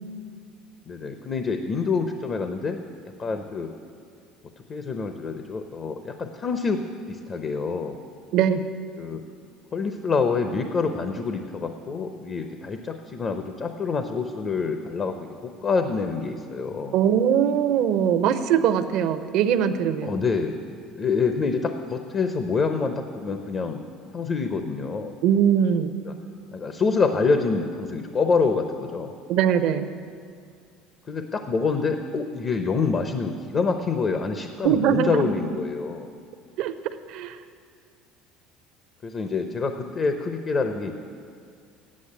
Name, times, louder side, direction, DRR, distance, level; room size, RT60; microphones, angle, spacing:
voice 1, 0.9-2.8 3.2-3.7 4.7-6.8 7.1-8.0 9.0-9.2 9.7-15.2 15.4-17.0 20.0-20.6 20.9-23.8 24.1-25.1 26.5-29.1 31.1-36.1 39.0-40.9, left 4 dB, 40° left, 7 dB, 0.7 m, -26 dB
voice 2, 8.3-8.6 16.9-20.1 25.2-25.9 29.3-29.9 34.6-35.3 36.6-36.7 37.1-37.4, right 8 dB, 70° right, 11 dB, 0.6 m, -21 dB
8.5 x 7.9 x 8.8 m, 2.3 s
supercardioid pair, 105°, 0 cm